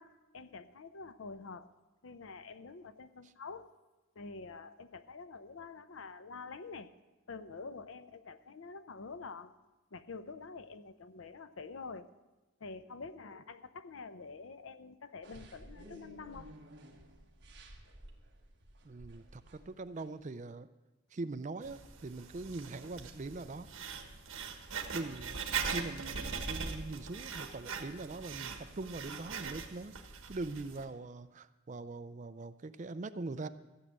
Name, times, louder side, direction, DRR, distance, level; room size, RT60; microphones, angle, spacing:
voice 1, 0.0-1.7 2.0-3.7 4.2-6.9 7.3-9.5 9.9-12.1 12.6-16.5, left 4 dB, 75° left, 12 dB, 0.6 m, -47 dB
sound 1, 15.2-20.2, right 1 dB, 55° right, 1.5 m, -54 dB
voice 2, 18.8-20.7 21.1-23.7 24.9-33.5, right 3 dB, 35° right, 12 dB, 0.4 m, -42 dB
Writing, 21.6-30.8, right 5 dB, 80° right, 1.4 m, -41 dB
14.5 x 6.5 x 8.2 m, 1.1 s
head